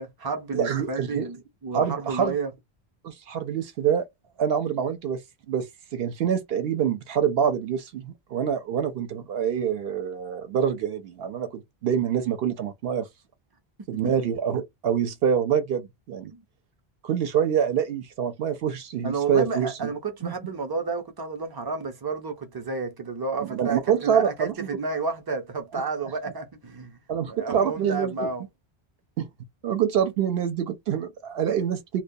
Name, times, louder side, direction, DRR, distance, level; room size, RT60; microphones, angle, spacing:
voice 1, 0.0-2.5 13.9-14.1 16.3-16.4 19.0-27.0 27.2-28.5, right 4 dB, 30° right, 0.4 m, -31 dB
voice 2, 0.5-1.3 1.7-2.4 3.0-4.1 4.4-5.2 5.5-5.7 5.9-13.1 13.9-16.3 17.0-19.9 20.2-20.3 23.4-24.7 27.1-28.3 29.2-29.3 29.6-32.0, right 8 dB, 70° right, 0.8 m, -26 dB
2.2 x 2.1 x 2.6 m
omnidirectional pair, 1.1 m